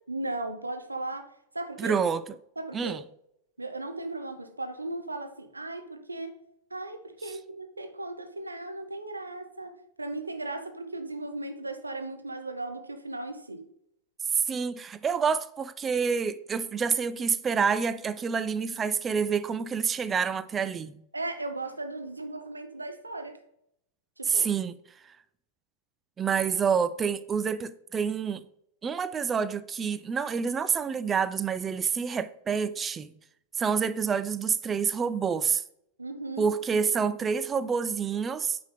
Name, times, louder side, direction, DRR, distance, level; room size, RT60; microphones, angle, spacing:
voice 1, 0.1-2.0 2.6-3.0 3.6-6.3 6.7-13.7 21.1-23.4 24.2-24.5 36.0-36.5, right 2 dB, 80° right, 0.7 m, -36 dB
voice 2, 1.8-2.2 2.7-3.0 14.4-21.0 24.3-24.8 25.1-25.2 26.2-28.4 28.8-33.1 33.6-35.6 36.4-38.6, right 6 dB, 20° right, 0.3 m, -28 dB
8.9 x 3.5 x 3.7 m
figure-of-eight pair, 90°, 0 cm